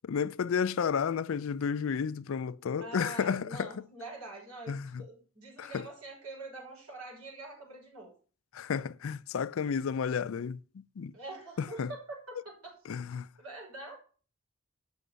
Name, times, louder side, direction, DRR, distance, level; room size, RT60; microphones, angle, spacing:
voice 1, 0.0-3.7 4.7-5.0 5.6-5.9 8.5-10.6 11.0-11.1 11.6-11.9 12.9-13.3, left 6 dB, 60° left, 0.4 m, -32 dB
voice 2, 2.8-8.1 11.1-12.8 13.4-14.0, right 2 dB, 85° right, 5.7 m, -45 dB
8.8 x 6.3 x 6.7 m
head